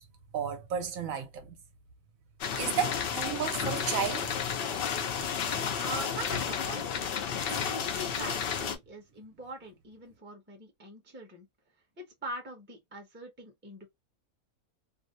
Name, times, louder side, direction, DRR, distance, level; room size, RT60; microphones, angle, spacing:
voice 1, 0.3-1.6 2.6-4.3, right 8 dB, 70° right, 0.9 m, -33 dB
sound 1, 2.4-8.8, left 7 dB, 75° left, 0.5 m, -32 dB
voice 2, 5.7-6.9 7.5-11.5 12.0-13.9, right 1 dB, 10° right, 0.5 m, -42 dB
2.6 x 2.0 x 2.6 m
omnidirectional pair, 1.6 m